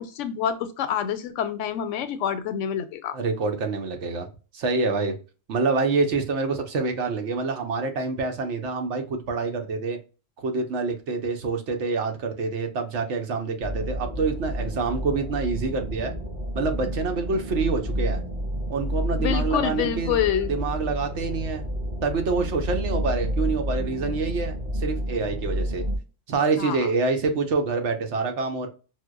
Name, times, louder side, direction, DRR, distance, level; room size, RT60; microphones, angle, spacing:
voice 1, 0.0-3.2 19.2-20.6 26.6-26.9, left 9 dB, 85° left, 10 dB, 0.9 m, -27 dB
voice 2, 3.1-4.3 4.5-5.1 5.5-10.0 10.4-16.1 16.5-18.2 18.7-20.2 20.5-21.7 22.0-25.8 26.3-28.7, right 4 dB, 75° right, 5 dB, 1.0 m, -26 dB
sound 1, 13.6-26.0, equal, 45° right, 2.1 m, -30 dB
4.7 x 2.1 x 2.2 m, 0.34 s
omnidirectional pair, 1.2 m